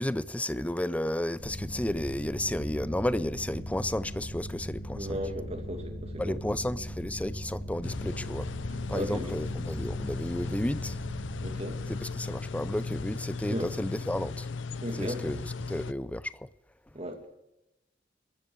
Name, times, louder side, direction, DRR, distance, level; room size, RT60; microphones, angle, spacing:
voice 1, 0.0-5.2 6.2-8.5 8.9-11.0 11.9-14.5 15.0-16.5, left 1 dB, 10° left, 0.5 m, -32 dB
sound 1, 1.4-14.6, equal, 40° left, 3.1 m, -40 dB
voice 2, 4.9-6.4 8.9-9.3 11.4-11.8 13.5-13.7 14.8-15.3 16.9-17.3, equal, 35° right, 2.4 m, -36 dB
sound 2, 7.8-15.9, left 4 dB, 90° left, 0.6 m, -37 dB
22.5 x 13.5 x 4.7 m
head